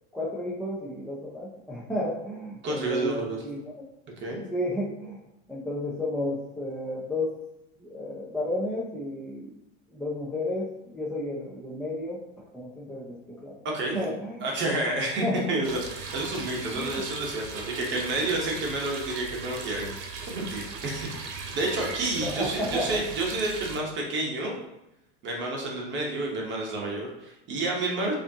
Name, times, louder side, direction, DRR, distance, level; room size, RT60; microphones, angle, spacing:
voice 1, 0.1-3.8 4.5-5.2 5.5-7.4 7.8-9.5 9.9-12.2 12.5-13.6 13.9-14.9 15.2-15.6 16.7-17.1 22.2-23.0, left 1 dB, ahead, -4 dB, 0.4 m, -32 dB
voice 2, 2.6-3.4 4.2-4.4 13.6-14.1 14.4-24.5 25.2-28.1, right 2 dB, 35° right, -1 dB, 0.8 m, -30 dB
sound 1, 15.6-23.8, right 4 dB, 90° right, 0.8 m, -38 dB
4.9 x 2.6 x 2.7 m, 0.86 s
supercardioid pair, 130°, 35 cm